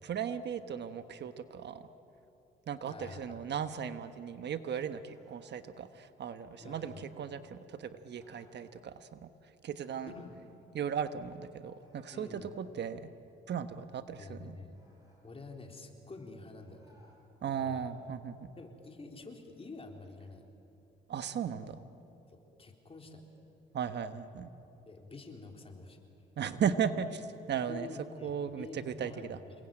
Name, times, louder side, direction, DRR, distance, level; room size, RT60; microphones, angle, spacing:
voice 1, 0.0-1.9 2.7-9.3 9.6-10.1 10.7-13.1 13.5-14.6 17.4-18.5 21.1-21.8 23.7-24.5 26.4-27.9 28.2-29.4, right 7 dB, 60° right, 10 dB, 1.2 m, -36 dB
voice 2, 2.8-3.5 6.6-7.1 10.1-10.4 12.1-12.5 14.2-14.8 15.2-17.0 17.6-17.9 18.6-20.4 22.3-23.2 24.9-26.0 27.7-29.5, left 3 dB, 30° left, 2 dB, 3.8 m, -48 dB
sound 1, 5.0-5.6 6.5-7.1 8.1-8.6 9.8-10.3 11.7-12.4 14.7-15.3 16.6-17.2, equal, 20° right, 7.7 m, -66 dB
28.5 x 20.5 x 9.0 m, 2.8 s
cardioid pair, 90°, 20 cm